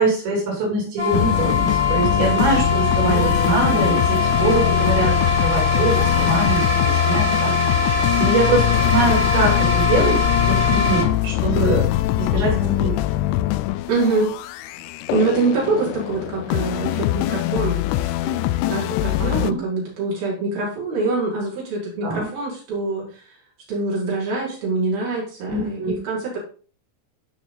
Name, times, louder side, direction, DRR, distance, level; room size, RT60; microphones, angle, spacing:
voice 1, 0.0-5.1 5.4-11.9 12.2-12.9 19.3-19.6 22.0-22.3 25.5-26.0, right 3 dB, 85° right, -2 dB, 6.0 m, -23 dB
sound 1, 1.0-11.0, left 3 dB, 20° right, 2.7 m, -22 dB
sound 2, 1.1-19.5, left 15 dB, 80° left, 2.4 m, -22 dB
voice 2, 13.9-14.3 15.1-18.4 18.7-23.1 23.7-26.4, right 3 dB, 60° right, -4 dB, 7.0 m, -24 dB
17.0 x 5.8 x 4.1 m, 0.40 s
omnidirectional pair, 5.0 m